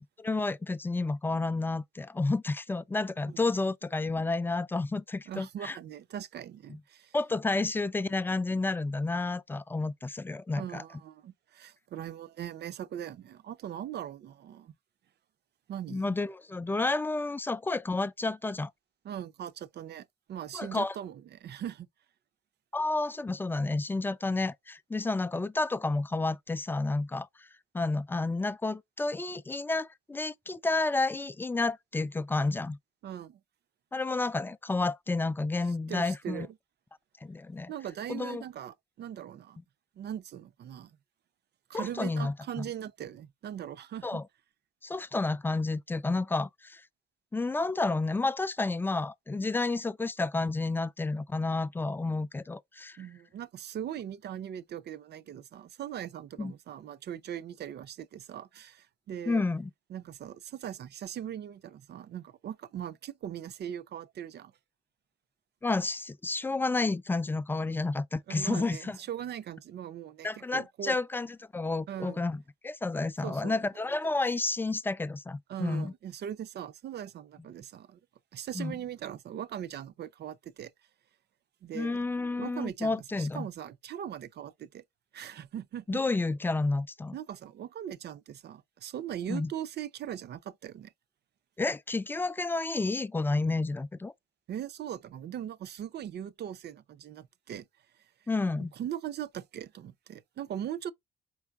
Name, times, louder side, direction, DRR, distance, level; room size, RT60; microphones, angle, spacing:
voice 1, 0.2-5.8 6.7-6.8 7.1-10.8 15.9-18.7 20.5-20.9 22.7-27.5 27.7-32.8 33.9-36.5 37.2-37.7 38.1-38.4 41.7-42.7 44.0-44.2 44.8-46.8 47.3-53.0 56.4-56.5 59.3-59.7 65.6-69.0 70.2-75.9 78.5-78.8 81.7-83.5 85.9-87.1 89.3-89.5 91.6-94.1 98.3-98.7, left 3 dB, 10° left, 0.3 m, -30 dB
voice 2, 5.3-7.1 10.5-14.7 15.7-16.1 19.0-21.9 33.0-33.4 35.9-36.5 37.7-39.6 40.0-41.0 41.7-44.2 53.0-59.5 59.9-64.5 68.3-71.0 71.9-72.2 73.2-73.6 75.5-78.0 78.3-80.7 81.6-82.1 82.4-84.8 85.1-86.0 87.1-90.9 94.5-97.7 98.7-100.9, right 10 dB, 55° right, 0.5 m, -40 dB
4.6 x 3.2 x 2.3 m
cardioid pair, 90°, 20 cm